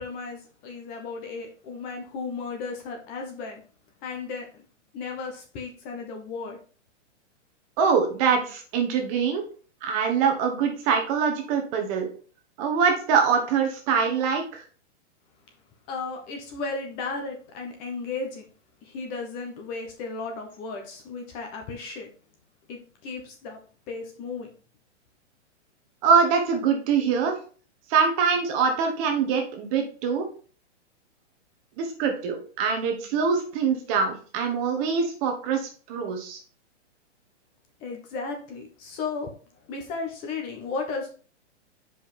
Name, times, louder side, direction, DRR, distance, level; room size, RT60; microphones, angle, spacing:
voice 1, 0.0-3.6 4.0-4.5 4.9-6.6 15.9-18.4 18.8-22.1 22.7-23.6 23.9-24.5 37.8-39.3 39.7-41.1, left 4 dB, 25° left, 3 dB, 1.1 m, -34 dB
voice 2, 7.8-9.4 9.8-12.1 12.6-14.6 26.0-27.3 27.9-30.2 31.8-36.4, right 6 dB, 30° right, 4 dB, 1.2 m, -24 dB
5.1 x 5.0 x 4.3 m, 0.40 s
hypercardioid pair, 155°, 36 cm